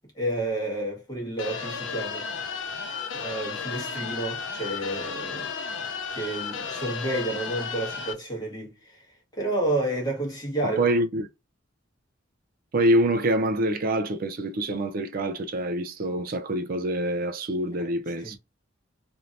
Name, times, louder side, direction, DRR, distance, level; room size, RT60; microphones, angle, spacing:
voice 1, 0.1-2.2 3.1-5.8 6.1-9.1 9.3-10.9 17.8-18.4, right 2 dB, 20° left, 1.4 m, -30 dB
sound 1, 1.4-8.1, left 5 dB, 85° left, 0.5 m, -33 dB
voice 2, 10.6-11.3 12.7-18.4, right 1 dB, 50° right, 0.4 m, -25 dB
3.1 x 2.7 x 2.5 m
head